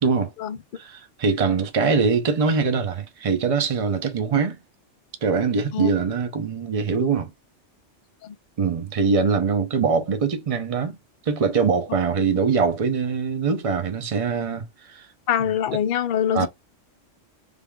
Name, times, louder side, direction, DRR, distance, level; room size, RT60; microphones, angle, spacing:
voice 1, 0.0-0.3 0.8-4.6 5.2-7.3 8.6-11.0 11.2-15.1 16.3-16.5, right 5 dB, 35° right, 0.6 m, -23 dB
voice 2, 15.3-16.5, left 9 dB, 60° left, 0.6 m, -24 dB
3.5 x 3.4 x 2.3 m
omnidirectional pair, 1.2 m